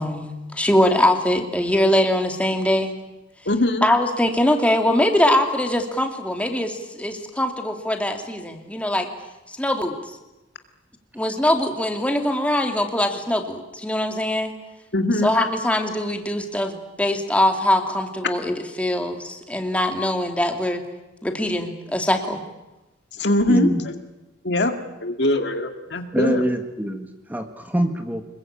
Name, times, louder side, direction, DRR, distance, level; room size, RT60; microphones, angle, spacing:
voice 1, 0.0-2.9 3.8-9.1 9.5-10.2 11.1-14.5 15.2-20.8 21.2-22.4, left 1 dB, 5° left, 4 dB, 2.7 m, -22 dB
voice 2, 3.5-3.9 14.9-15.3 23.2-23.9 24.4-24.7 25.0-26.4, left 1 dB, 65° left, 6 dB, 2.2 m, -22 dB
voice 3, 23.5-23.8 26.1-28.2, equal, 10° right, 6 dB, 1.6 m, -24 dB
26.5 x 21.5 x 8.8 m, 1.0 s
head